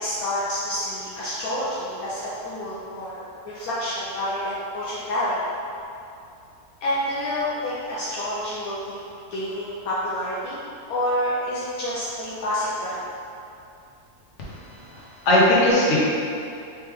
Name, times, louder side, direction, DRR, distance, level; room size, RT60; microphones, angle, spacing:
voice 1, 0.0-5.4 6.8-9.0 9.3-10.6 10.9-13.0, left 1 dB, 70° left, -9 dB, 1.2 m, -28 dB
voice 2, 14.9-16.0, left 1 dB, 55° left, -7 dB, 1.3 m, -19 dB
4.6 x 3.1 x 3.5 m, 2.6 s
omnidirectional pair, 1.6 m